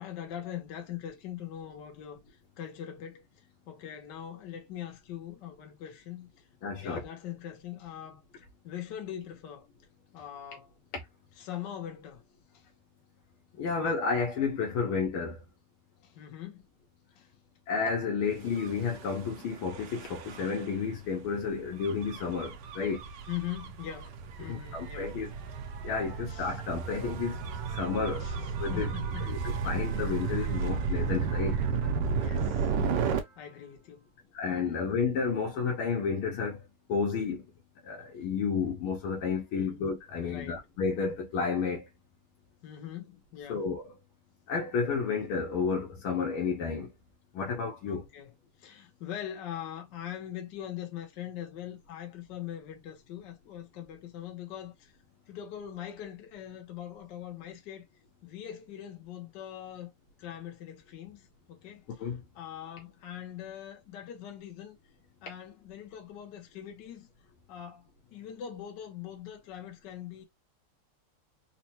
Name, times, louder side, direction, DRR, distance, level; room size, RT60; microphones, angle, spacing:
voice 1, 0.0-6.3 6.8-8.2 8.6-9.7 10.1-10.7 11.4-12.2 12.5-12.6 16.0-16.7 17.2-17.3 23.3-25.1 26.3-26.5 28.2-28.5 28.7-29.3 32.2-33.1 33.4-34.1 34.6-34.8 39.5-39.8 40.2-40.6 42.6-43.6 47.9-48.3 48.6-54.9 55.3-57.8 58.2-59.9 60.2-61.9 62.3-64.8 65.2-67.1 67.5-70.2, left 10 dB, 65° left, 1.4 m, -42 dB
voice 2, 6.6-7.0 10.9-11.0 13.6-15.4 17.7-23.0 24.4-25.3 25.8-27.4 27.7-28.9 29.3-31.6 34.3-37.4 37.8-41.9 43.5-43.9 44.5-46.9 47.3-48.1 62.0-62.2, left 5 dB, 80° left, 1.7 m, -31 dB
Gull seagull / Waves surf / Siren, 18.5-33.2, right 5 dB, 70° right, 1.1 m, -33 dB
4.2 x 2.2 x 2.8 m
omnidirectional pair, 2.3 m